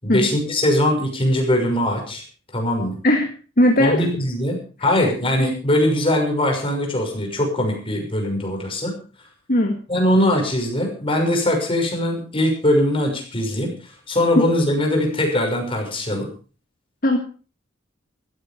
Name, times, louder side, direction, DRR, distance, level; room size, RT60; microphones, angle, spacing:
voice 1, 0.0-2.2 2.5-3.0 3.8-8.9 9.9-16.3, left 1 dB, 30° left, 2 dB, 6.1 m, -21 dB
voice 2, 3.6-4.1 9.5-9.8 17.0-17.2, left 1 dB, 45° left, 4 dB, 1.9 m, -17 dB
15.5 x 14.5 x 5.2 m, 0.39 s
head